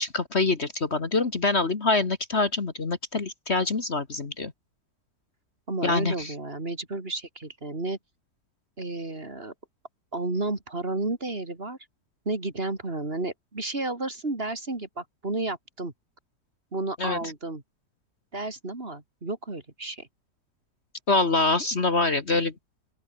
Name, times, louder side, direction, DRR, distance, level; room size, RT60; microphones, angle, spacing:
voice 1, 0.0-4.5 5.8-6.3 17.0-17.2 21.1-22.5, left 3 dB, 40° left, 2.0 m, -25 dB
voice 2, 5.7-8.0 8.8-9.5 10.1-11.8 12.2-15.9 16.7-17.6 18.3-20.1, right 2 dB, 35° right, 3.3 m, -32 dB
open air
omnidirectional pair, 1.8 m